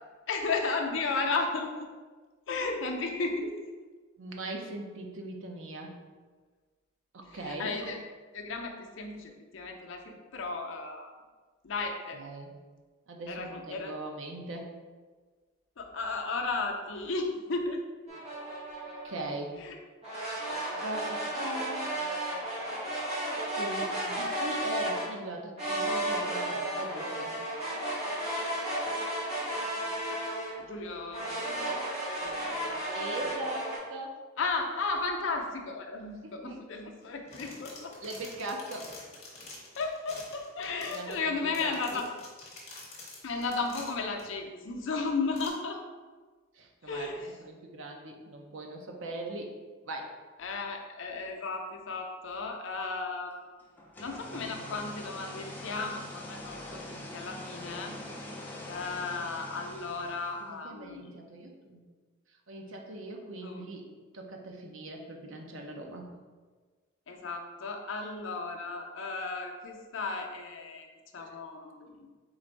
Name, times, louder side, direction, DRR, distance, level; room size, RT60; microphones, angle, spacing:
voice 1, 0.3-1.9 2.5-3.7 7.3-8.0 8.3-11.1 11.6-12.2 13.3-13.9 15.8-17.8 19.6-19.8 30.6-32.8 33.2-33.3 34.4-38.0 39.8-42.0 43.2-45.8 46.9-47.3 50.4-53.6 54.0-58.0 58.7-61.1 63.4-63.6 67.1-70.9 71.1-71.9, left 3 dB, 65° left, 2 dB, 0.5 m, -34 dB
voice 2, 4.2-6.0 7.1-7.7 12.1-12.5 13.1-14.7 19.0-19.6 20.8-22.0 23.5-27.4 32.9-34.2 36.2-36.6 38.0-38.9 40.9-42.0 46.5-49.5 49.8-50.2 60.4-61.8 62.5-66.1 71.2-71.4, right 1 dB, 70° right, 2 dB, 0.6 m, -40 dB
sound 1, 18.1-19.3 20.0-25.1 25.6-30.6 31.1-33.8, right 1 dB, 30° right, 1.1 m, -33 dB
sound 2, 37.0-44.2 44.8-44.9 45.3-45.5, left 2 dB, 30° left, 1.0 m, -48 dB
sound 3, 53.8-60.5, left 1 dB, 10° left, 0.4 m, -43 dB
3.9 x 2.5 x 4.5 m, 1.4 s
head